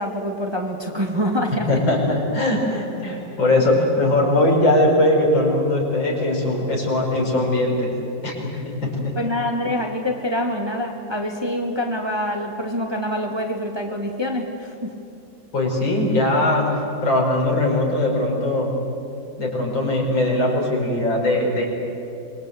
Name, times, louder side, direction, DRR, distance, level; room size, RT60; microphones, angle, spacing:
voice 1, 0.0-1.7 9.2-15.0, equal, 15° right, 1 dB, 2.2 m, -25 dB
voice 2, 1.7-7.9 8.2-9.2 15.5-16.7 17.0-18.7 19.4-21.7, left 1 dB, 75° left, -1 dB, 5.8 m, -20 dB
26.0 x 22.5 x 8.2 m, 2.8 s
omnidirectional pair, 2.1 m